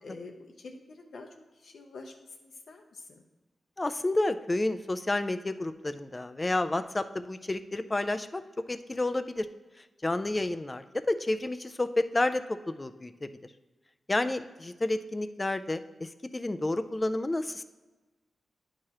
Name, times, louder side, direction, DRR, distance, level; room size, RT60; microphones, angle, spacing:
voice 1, 0.0-3.2, left 3 dB, 70° left, 2 dB, 0.6 m, -47 dB
voice 2, 3.8-8.4 8.7-9.5 10.0-13.3 14.1-17.6, left 2 dB, 20° left, 11 dB, 0.3 m, -30 dB
11.0 x 4.7 x 2.9 m, 1.2 s
wide cardioid pair, 125°, 0 cm